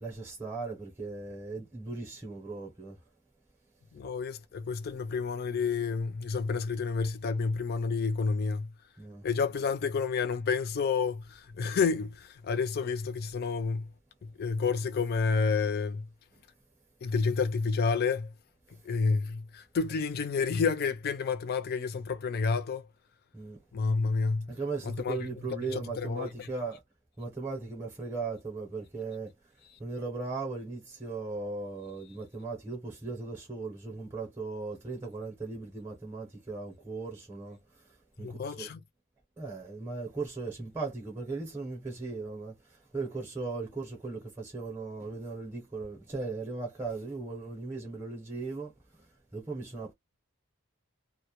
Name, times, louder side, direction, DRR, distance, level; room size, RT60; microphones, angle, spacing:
voice 1, 0.0-2.9 9.0-9.2 23.3-23.6 24.5-26.8 27.2-29.3 29.8-37.6 38.2-38.7 39.4-42.5 42.9-48.7 49.3-49.9, right 3 dB, 10° right, 0.7 m, -37 dB
voice 2, 3.9-8.7 9.2-13.9 14.2-16.1 17.0-18.3 18.8-22.9 23.7-24.5 24.8-25.2 25.7-26.5 38.2-38.8, left 5 dB, 45° left, 0.3 m, -30 dB
2.1 x 2.0 x 2.9 m
head